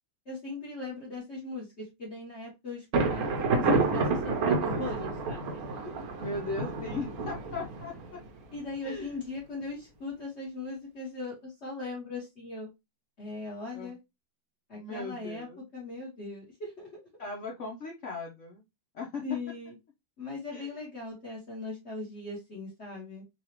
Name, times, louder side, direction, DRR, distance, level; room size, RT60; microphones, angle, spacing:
voice 1, 0.2-6.1 8.5-12.7 13.2-14.0 14.7-17.0 19.2-19.8 20.2-23.2, left 3 dB, 40° left, -3 dB, 1.2 m, -39 dB
Thunder, 2.9-8.6, right 3 dB, 60° right, 1.1 m, -29 dB
voice 2, 6.2-8.2 8.8-9.1 13.7-13.9 14.7-15.6 17.2-18.6 18.9-19.3 20.5-20.8, left 3 dB, 65° left, -1 dB, 0.7 m, -39 dB
3.9 x 2.3 x 2.9 m, 0.22 s
omnidirectional pair, 2.0 m